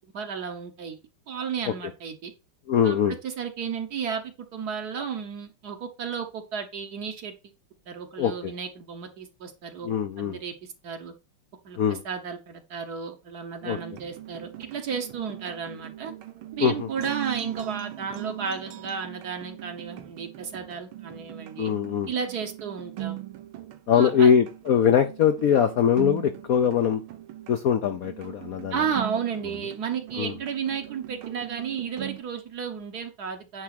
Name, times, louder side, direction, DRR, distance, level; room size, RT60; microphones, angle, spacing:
voice 1, 0.1-1.0 1.3-2.3 2.8-3.0 3.2-7.3 7.9-9.9 10.2-11.1 11.6-16.1 16.6-21.7 22.1-23.2 23.9-24.3 28.7-33.6, right 6 dB, 55° right, 1.4 m, -33 dB
voice 2, 2.7-3.2 8.2-8.5 9.8-10.4 11.8-12.0 13.6-13.8 16.6-16.9 21.6-22.1 23.9-27.0 27.5-28.8 30.2-30.3, left 8 dB, 70° left, 0.8 m, -22 dB
sound 1, 13.6-32.2, right 14 dB, 85° right, 1.7 m, -40 dB
9.6 x 3.4 x 5.8 m
omnidirectional pair, 2.3 m